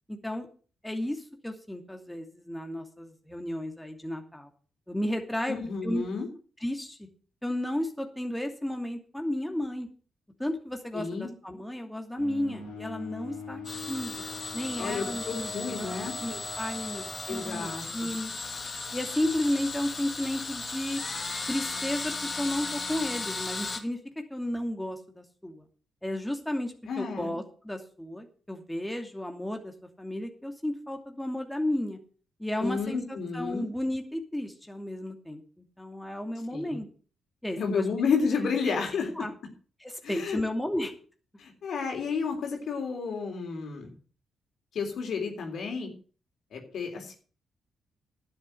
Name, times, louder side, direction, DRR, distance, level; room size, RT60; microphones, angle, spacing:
voice 1, 0.1-0.5 0.8-4.5 4.9-5.6 5.8-6.0 6.6-7.1 7.4-9.9 10.4-13.6 13.9-14.2 14.5-18.3 18.9-21.0 21.5-24.0 24.3-25.6 26.0-32.0 32.4-36.9 37.4-37.8 39.2-39.3 39.8-40.9, left 1 dB, 5° left, 4 dB, 2.6 m, -33 dB
voice 2, 5.5-6.3 10.9-11.3 14.8-16.2 17.3-18.1 26.9-27.3 32.6-33.7 36.5-36.8 37.6-39.3 40.0-40.4 41.4-44.0 44.7-45.9 46.5-47.1, left 5 dB, 65° left, 3 dB, 3.6 m, -31 dB
sound 1, 12.2-17.8, left 3 dB, 85° left, 3.8 m, -42 dB
sound 2, 13.6-23.8, left 3 dB, 40° left, 2.7 m, -36 dB
11.5 x 7.7 x 7.8 m, 0.40 s
hypercardioid pair, 40°, 0 cm